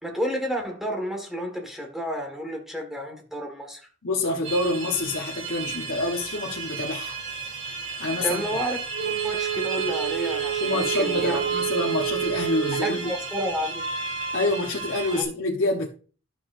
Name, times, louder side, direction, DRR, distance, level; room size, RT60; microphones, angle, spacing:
voice 1, 0.0-3.8 8.2-11.5 12.8-13.8 15.1-15.2, equal, ahead, 1.7 m, -31 dB
voice 2, 4.0-7.2 8.0-8.4 10.6-13.1 14.3-15.9, left 2 dB, 65° left, 1.1 m, -27 dB
sound 1, 4.4-15.2, right 4 dB, 35° right, 3.2 m, -33 dB
Wind instrument woodwind instrument, 8.9-13.1, right 12 dB, 80° right, 1.9 m, -29 dB
12.0 x 6.9 x 2.6 m
head